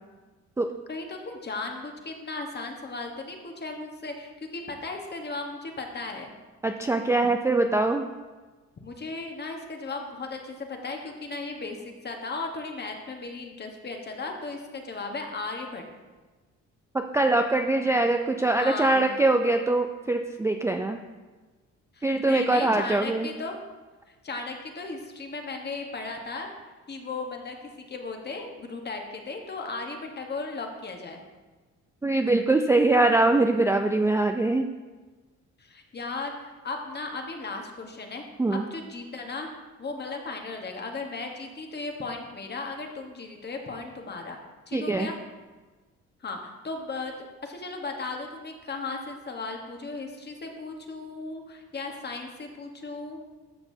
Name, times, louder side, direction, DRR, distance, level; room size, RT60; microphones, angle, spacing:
voice 1, 0.9-6.3 8.8-15.8 18.6-19.2 21.9-23.6 24.1-26.5 26.9-27.6 27.9-31.2 35.6-38.2 38.5-39.5 39.8-44.4 44.7-45.1 46.2-47.1 47.4-53.2, left 3 dB, 35° left, 3 dB, 1.2 m, -36 dB
voice 2, 6.6-8.0 17.1-21.0 22.0-23.3 32.0-34.7 38.4-38.6 44.7-45.1, right 2 dB, 10° right, 4 dB, 0.3 m, -23 dB
12.5 x 6.0 x 2.7 m, 1.3 s
cardioid pair, 90°, 30 cm